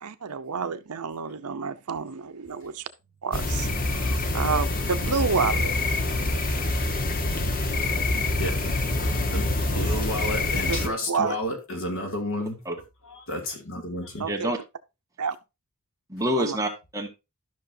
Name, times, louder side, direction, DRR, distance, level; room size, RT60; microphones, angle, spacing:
voice 1, 0.0-2.9 3.2-5.7 9.8-9.9 10.5-11.4 14.2-14.5 15.2-15.4 16.4-16.6, right 5 dB, 90° right, 0.8 m, -29 dB
sound 1, 3.3-10.9, left 2 dB, 40° left, 1.2 m, -26 dB
voice 2, 9.3-12.6 13.0-14.3, left 1 dB, 60° left, 2.6 m, -31 dB
voice 3, 14.3-14.6 16.1-17.1, equal, 15° right, 1.7 m, -27 dB
13.0 x 6.1 x 2.7 m
head